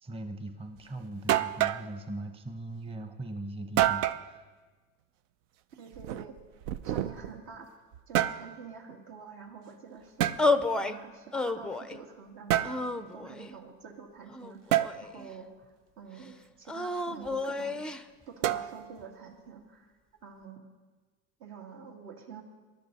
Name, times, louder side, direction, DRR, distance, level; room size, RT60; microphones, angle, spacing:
voice 1, 0.0-4.5 6.9-7.2, right 1 dB, 15° right, 7 dB, 0.9 m, -40 dB
sound 1, 0.8-0.9 1.3-1.9 3.8-4.3 5.9-7.4 7.9-8.5 10.2-10.4 12.5-12.8 14.7-14.9 18.4-19.0, right 12 dB, 90° right, 0.6 m, -28 dB
voice 2, 5.8-6.4 6.8-7.7 8.1-10.3 10.7-17.8 18.3-19.9 20.2-20.6 21.4-22.4, right 5 dB, 70° right, 2 dB, 2.5 m, -47 dB
sound 2, 10.4-11.0 11.3-12.0 12.6-13.5 14.3-15.3 16.7-18.0, left 3 dB, 5° left, 0.3 m, -31 dB
20.0 x 11.5 x 4.1 m, 1.3 s
supercardioid pair, 115°, 36 cm